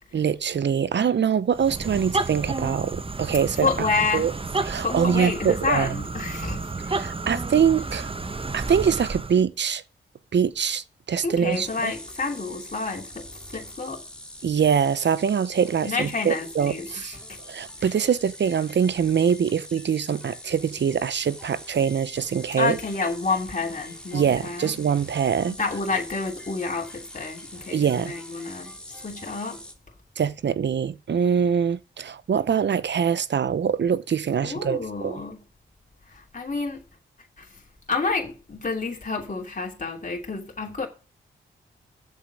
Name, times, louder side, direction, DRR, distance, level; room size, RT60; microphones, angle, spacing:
voice 1, 0.1-3.7 4.1-4.3 4.6-5.9 6.9-8.1 8.5-9.8 10.3-11.9 14.4-17.1 17.5-22.8 24.1-25.6 27.7-28.1 30.2-35.2, right 7 dB, 55° right, 0.8 m, -24 dB
sound 1, 1.5-9.4, right 3 dB, 25° right, 1.0 m, -31 dB
voice 2, 3.6-4.3 4.8-6.7 11.2-14.0 15.8-17.4 17.8-17.9 22.6-24.7 25.5-29.6 34.4-35.4 36.1-36.8 37.4-37.5 37.9-40.9, left 4 dB, 35° left, 2.9 m, -29 dB
sound 2, 11.5-29.7, left 1 dB, 5° left, 2.7 m, -43 dB
7.4 x 7.0 x 6.3 m
supercardioid pair, 50°, 21 cm